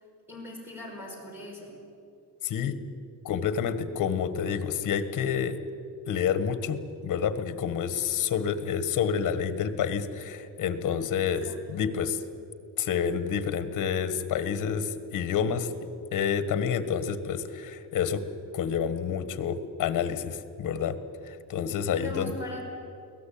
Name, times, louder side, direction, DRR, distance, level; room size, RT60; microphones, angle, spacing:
voice 1, 0.3-1.8 11.4-11.8 21.9-22.7, left 2 dB, 5° right, -1 dB, 5.3 m, -40 dB
voice 2, 2.4-2.8 3.2-5.5 6.1-12.2 12.8-18.3 18.5-20.9 21.2-22.3, left 7 dB, 60° left, 12 dB, 1.5 m, -29 dB
24.0 x 18.0 x 8.7 m, 2.6 s
cardioid pair, 175°, 34 cm